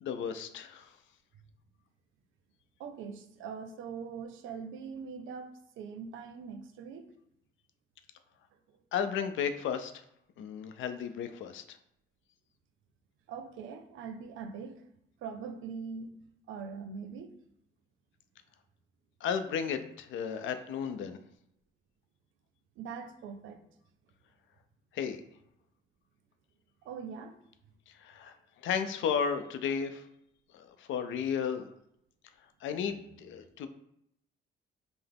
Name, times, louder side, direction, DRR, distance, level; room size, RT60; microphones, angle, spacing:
voice 1, 0.0-0.9 8.9-9.9 10.4-11.6 19.2-21.2 24.9-25.2 27.9-28.4 28.6-30.1 30.5-31.7 32.6-33.7, left 7 dB, 75° left, 9 dB, 0.5 m, -33 dB
voice 2, 2.8-7.1 13.3-14.9 15.2-17.3 22.8-23.6 26.8-27.3 33.0-33.2, right 6 dB, 80° right, 7 dB, 0.5 m, -42 dB
5.6 x 2.0 x 3.4 m, 0.76 s
cardioid pair, 90°, 20 cm